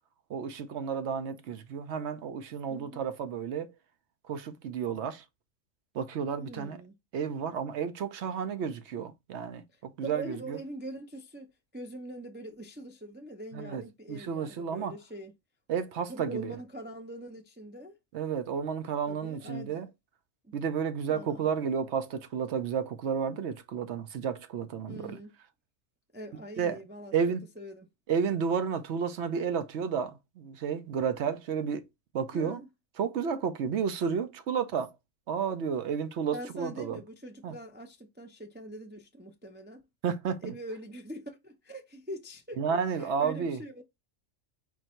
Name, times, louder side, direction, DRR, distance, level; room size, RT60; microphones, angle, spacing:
voice 1, 0.3-3.7 4.3-5.2 5.9-6.8 7.1-10.6 13.5-13.8 14.1-14.9 15.7-16.5 18.1-19.9 20.5-25.2 26.6-26.8 27.1-27.4 28.1-31.8 32.1-32.6 33.0-34.9 35.3-37.0 37.4-37.5 40.0-40.5 42.6-43.6, right 6 dB, 65° right, 0.9 m, -31 dB
voice 2, 2.7-3.0 6.4-6.9 9.7-15.3 16.1-17.9 19.1-19.7 20.4-20.6 21.0-21.5 24.9-25.3 26.1-27.1 27.6-27.9 32.3-32.7 36.3-39.8 40.4-43.8, right 1 dB, 15° right, 0.4 m, -43 dB
4.5 x 2.6 x 4.3 m
omnidirectional pair, 1.3 m